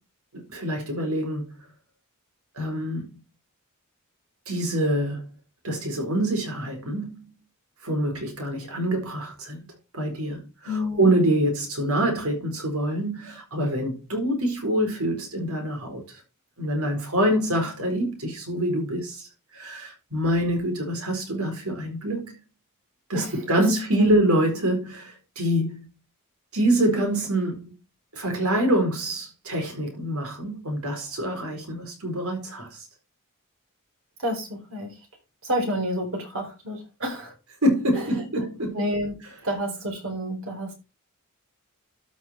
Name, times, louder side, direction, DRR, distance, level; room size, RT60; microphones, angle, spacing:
voice 1, 0.3-1.7 2.5-3.2 4.5-5.2 5.6-7.2 7.8-9.6 9.9-16.0 16.6-19.3 19.5-22.3 23.1-25.9 26.5-27.7 28.1-32.9 37.6-38.8, right 1 dB, 80° right, 4.5 m, -25 dB
voice 2, 10.6-11.1 23.1-23.3 23.6-23.7 24.0-24.1 34.2-34.9 35.4-37.3 37.9-38.0 38.7-39.1 39.4-40.7, equal, 65° right, 4.1 m, -29 dB
12.5 x 5.7 x 4.5 m
head